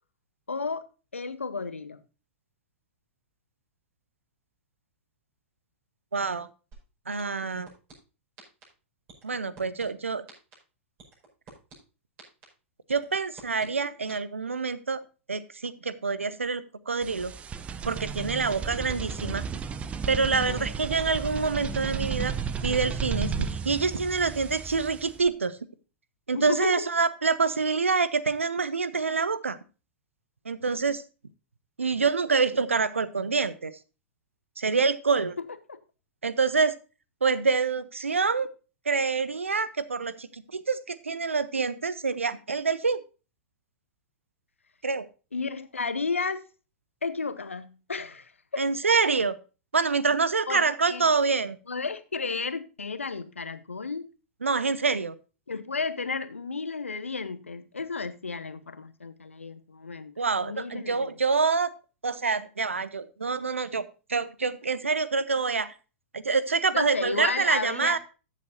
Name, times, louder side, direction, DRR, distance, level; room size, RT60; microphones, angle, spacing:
voice 1, 0.5-0.9 1.1-2.0 20.3-20.7 26.3-26.9 35.7-35.8 45.3-46.4 47.0-48.6 50.5-51.1 51.7-54.0 55.5-60.1 60.4-61.1 66.7-68.0, left 4 dB, 75° left, 0.9 m, -33 dB
voice 2, 6.1-6.5 7.1-7.7 9.2-10.2 12.9-15.0 15.3-17.3 17.8-19.4 20.1-22.4 22.6-25.6 26.3-29.6 30.4-31.0 31.8-33.7 34.6-35.4 36.2-36.7 37.2-38.5 38.9-43.0 44.8-45.1 48.6-49.3 49.7-51.6 54.4-55.1 60.2-61.7 62.0-65.7 66.1-68.0, right 4 dB, 75° right, 0.7 m, -26 dB
sound 1, 6.7-6.8 7.2-7.9 8.4-8.6 9.1-9.8 10.3-10.5 11.0-11.7 12.2-12.4 12.9-13.7 14.1-14.2, right 5 dB, 35° right, 5.5 m, -48 dB
sound 2, 17.0-25.3, right 6 dB, 20° right, 0.7 m, -33 dB
14.0 x 7.5 x 2.6 m
figure-of-eight pair, 100°, 7 cm